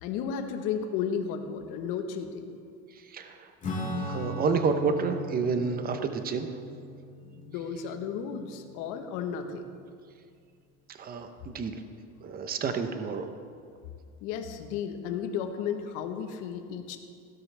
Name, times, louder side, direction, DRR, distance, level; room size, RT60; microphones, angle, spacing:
voice 1, 0.0-2.5 7.2-9.6 14.2-17.0, left 7 dB, 80° left, 6 dB, 1.3 m, -33 dB
voice 2, 3.1-3.5 4.0-6.5 11.0-11.8 12.2-13.3, right 5 dB, 30° right, 8 dB, 0.8 m, -29 dB
Acoustic guitar / Strum, 3.6-9.5, left 1 dB, 25° left, 2.3 m, -38 dB
16.0 x 12.0 x 3.4 m, 2.2 s
cardioid pair, 140°, 30 cm